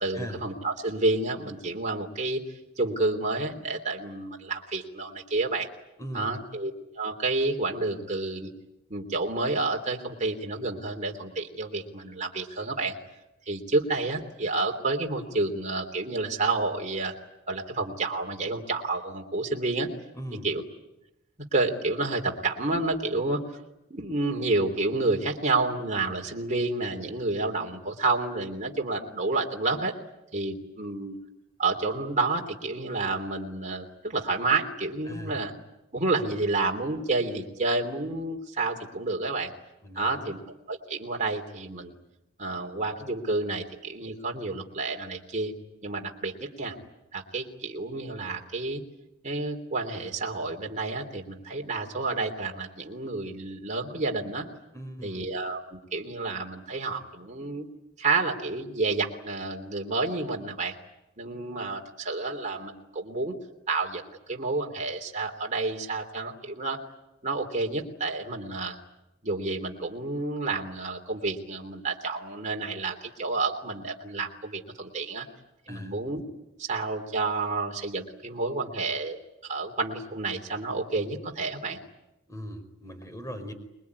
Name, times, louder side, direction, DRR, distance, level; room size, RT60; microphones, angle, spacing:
voice 1, 0.0-2.4 2.8-5.7 6.1-8.5 8.9-13.0 13.4-17.1 17.5-19.9 20.4-20.6 21.5-23.6 23.9-29.9 30.3-31.2 31.6-35.5 35.9-39.5 39.9-40.4 40.7-41.9 42.4-45.5 45.8-46.7 47.1-48.8 49.2-54.5 55.0-57.7 58.0-60.7 61.2-63.3 63.7-66.8 67.2-68.8 69.2-75.3 75.7-76.2 76.6-79.2 79.4-81.8, right 3 dB, 40° right, 1 dB, 3.2 m, -30 dB
voice 2, 6.0-6.3 20.1-20.5 35.1-35.4 39.8-40.4 54.7-55.3 75.7-75.9 82.3-83.5, equal, 15° left, 8 dB, 4.9 m, -39 dB
26.5 x 21.5 x 9.6 m, 0.91 s
head